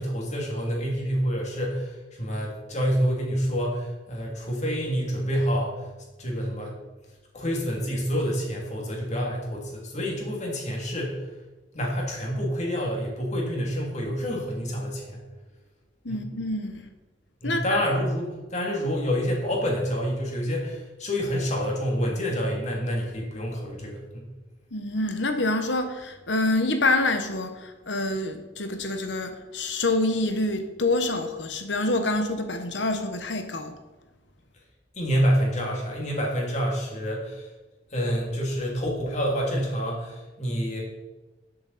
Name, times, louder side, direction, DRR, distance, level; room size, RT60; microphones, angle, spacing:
voice 1, 0.0-5.8 6.2-6.8 7.3-11.3 11.7-15.2 16.1-16.2 17.4-24.3 34.9-37.4 37.9-40.8, equal, 40° left, -1 dB, 3.0 m, -27 dB
voice 2, 16.0-16.9 17.4-17.8 24.7-33.7, left 2 dB, 75° left, 6 dB, 1.3 m, -26 dB
13.0 x 7.6 x 4.3 m, 1.2 s
head